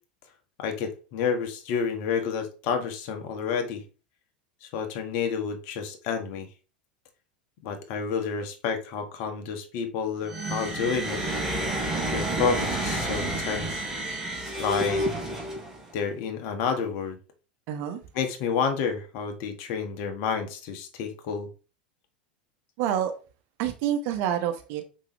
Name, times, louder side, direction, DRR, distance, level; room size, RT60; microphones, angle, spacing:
voice 1, 0.6-3.8 4.6-6.5 7.6-11.2 12.1-13.8 14.6-15.0 15.9-17.2 18.1-21.5, left 6 dB, 50° left, 1.6 m, -29 dB
sound 1, 10.2-15.9, right 1 dB, 10° right, 3.6 m, -30 dB
voice 2, 17.7-18.0 22.8-23.1 23.6-24.8, right 10 dB, 50° right, 1.3 m, -27 dB
6.5 x 5.4 x 3.2 m
figure-of-eight pair, 85°, 5 cm